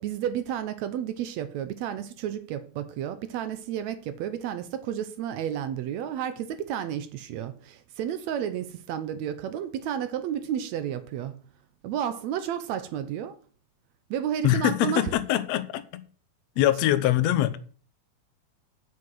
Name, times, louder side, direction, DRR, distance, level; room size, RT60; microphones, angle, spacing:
voice 1, 0.0-11.4 11.8-13.4 14.1-15.1, right 9 dB, 75° right, 1.9 m, -31 dB
voice 2, 14.4-16.0 16.6-17.6, left 13 dB, 70° left, 1.9 m, -23 dB
7.6 x 6.0 x 7.6 m
omnidirectional pair, 3.4 m